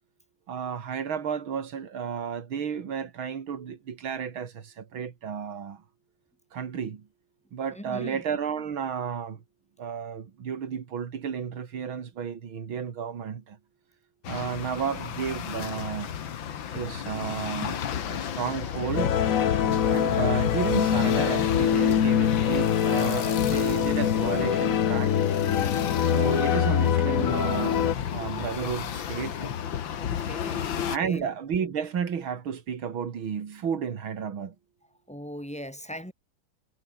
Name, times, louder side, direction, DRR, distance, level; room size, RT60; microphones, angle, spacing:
voice 1, 0.5-5.8 6.5-7.0 7.5-9.4 9.8-13.6 14.3-16.2 16.7-19.2 19.9-25.1 26.0-29.6 30.9-34.5, right 7 dB, 85° right, 2.9 m, -32 dB
voice 2, 7.7-8.2 30.0-31.3 35.1-36.1, equal, 5° left, 5.8 m, -40 dB
sound 1, 14.2-31.0, left 9 dB, 75° left, 2.1 m, -33 dB
sound 2, 19.0-27.9, left 9 dB, 50° left, 1.2 m, -24 dB
omnidirectional pair, 2.2 m